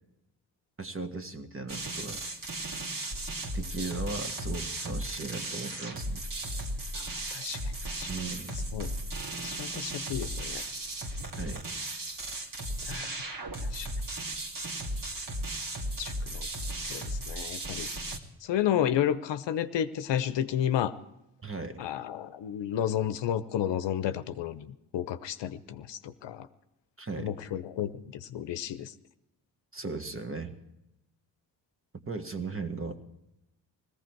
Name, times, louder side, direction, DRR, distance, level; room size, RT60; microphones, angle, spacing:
voice 1, 0.8-2.2 3.5-6.2 8.1-8.6 11.4-11.6 21.4-21.8 27.0-27.4 29.7-30.6 31.9-33.0, right 3 dB, 30° right, 7 dB, 1.7 m, -37 dB
sound 1, 1.7-18.2, right 1 dB, 45° right, 2.2 m, -36 dB
voice 2, 6.9-7.6 7.9-8.1 8.7-8.9 9.4-10.6 12.8-13.2 13.6-13.9 16.0-16.5 16.9-17.9 18.4-20.9 21.8-26.5 27.2-28.9, left 10 dB, 65° left, 12 dB, 0.8 m, -32 dB
18.0 x 15.0 x 4.6 m, 0.88 s
supercardioid pair, 45°, 46 cm